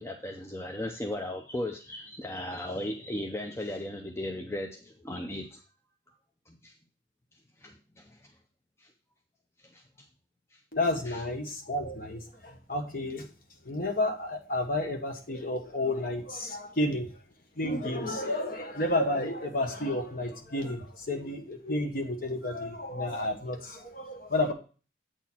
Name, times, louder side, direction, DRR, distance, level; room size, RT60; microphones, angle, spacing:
voice 1, 0.0-5.6 6.5-6.7 7.6-8.2 8.8-8.9 9.7-9.8 10.5-10.6 11.0-11.2, left 1 dB, 15° left, 3 dB, 0.5 m, -36 dB
voice 2, 10.7-13.2 13.7-17.1 17.6-24.5, left 1 dB, 50° left, 4 dB, 1.1 m, -31 dB
8.1 x 4.3 x 4.2 m, 0.36 s
head